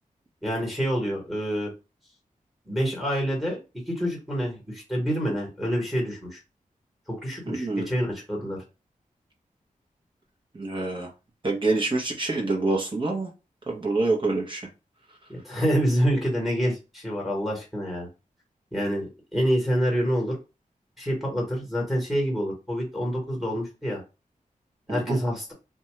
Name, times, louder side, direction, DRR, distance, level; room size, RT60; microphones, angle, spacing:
voice 1, 0.4-1.7 2.6-3.6 3.9-6.4 7.1-8.6 15.3-18.1 18.7-19.1 19.3-20.4 21.0-24.0 24.9-25.5, equal, ahead, -1 dB, 1.4 m, -27 dB
voice 2, 7.5-7.9 10.5-11.1 11.4-13.3 13.7-14.6 24.9-25.2, right 2 dB, 35° right, -1 dB, 1.0 m, -26 dB
2.6 x 2.3 x 3.1 m, 0.29 s
wide cardioid pair, 85°, 14 cm